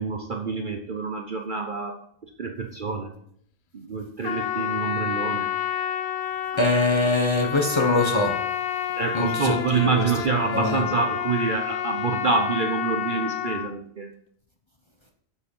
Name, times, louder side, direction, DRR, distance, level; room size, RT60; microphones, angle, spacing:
voice 1, 0.0-2.0 2.4-3.1 3.7-5.5 9.0-14.1, right 4 dB, 45° right, 4 dB, 0.8 m, -27 dB
Trumpet, 4.2-13.7, left 10 dB, 60° left, 0.8 m, -29 dB
voice 2, 6.6-8.4 9.1-10.0 10.5-10.9, left 2 dB, 25° left, 3 dB, 1.0 m, -23 dB
7.2 x 6.7 x 5.4 m, 0.66 s
omnidirectional pair, 1.4 m